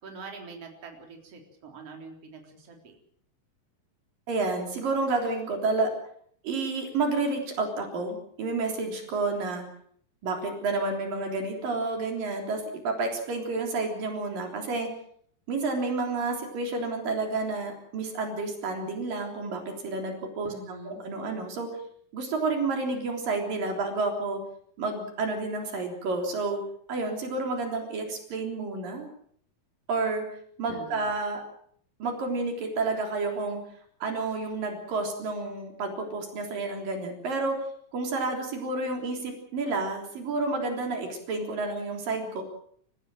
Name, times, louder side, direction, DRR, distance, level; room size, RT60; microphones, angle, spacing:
voice 1, 0.0-3.0 20.5-21.0 30.7-31.1, right 3 dB, 40° right, 2 dB, 4.7 m, -44 dB
voice 2, 4.3-5.9 6.4-9.6 10.2-14.9 15.5-21.8 22.1-24.4 24.8-26.6 26.9-29.1 29.9-30.3 30.6-31.4 32.0-33.6 34.0-37.6 37.9-42.4, right 3 dB, 70° right, 3 dB, 5.2 m, -30 dB
28.5 x 16.0 x 7.7 m, 0.63 s
omnidirectional pair, 4.1 m